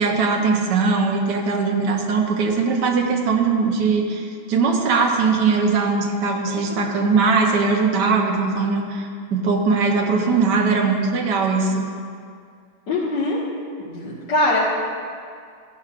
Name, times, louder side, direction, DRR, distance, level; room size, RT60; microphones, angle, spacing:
voice 1, 0.0-11.9, right 4 dB, 70° right, 1 dB, 1.6 m, -20 dB
voice 2, 12.9-13.4 13.8-14.6, left 2 dB, 70° left, -10 dB, 2.2 m, -22 dB
15.0 x 12.0 x 2.5 m, 2.2 s
omnidirectional pair, 2.0 m